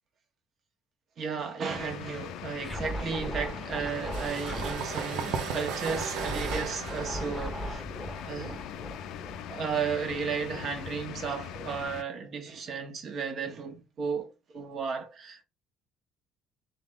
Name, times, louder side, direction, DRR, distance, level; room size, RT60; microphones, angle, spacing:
voice 1, 1.2-7.8 8.2-8.6 9.5-15.4, right 6 dB, 50° right, 1.4 m, -34 dB
sound 1, 1.7-12.0, left 10 dB, 75° left, 0.5 m, -41 dB
Scratching (performance technique), 2.6-4.9 5.9-10.2, right 1 dB, 5° right, 1.2 m, -38 dB
sound 2, 3.9-9.3, right 7 dB, 75° right, 0.7 m, -37 dB
3.8 x 3.5 x 3.7 m
cardioid pair, 105°, 0 cm